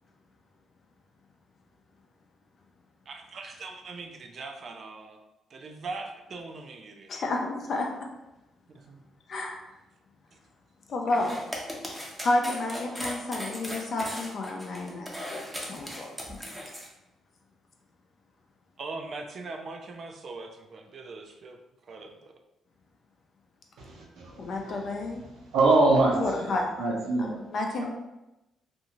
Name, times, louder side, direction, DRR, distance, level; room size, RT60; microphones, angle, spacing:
voice 1, 3.1-5.2 5.5-7.1 8.7-9.0 10.3-10.4 11.1-11.4 18.8-22.3, right 3 dB, 55° right, 4 dB, 0.4 m, -41 dB
voice 2, 7.1-7.9 9.3-9.7 10.9-11.4 11.9-16.4 24.4-25.2 26.2-26.7 27.2-27.8, left 2 dB, 55° left, 1 dB, 0.5 m, -31 dB
sound 1, 11.1-16.9, equal, 5° right, 0.6 m, -38 dB
voice 3, 23.8-24.9 25.5-26.5 26.8-27.4 27.8-27.9, right 2 dB, 80° right, -2 dB, 0.8 m, -24 dB
2.6 x 2.3 x 2.9 m, 0.97 s
cardioid pair, 90°, 0 cm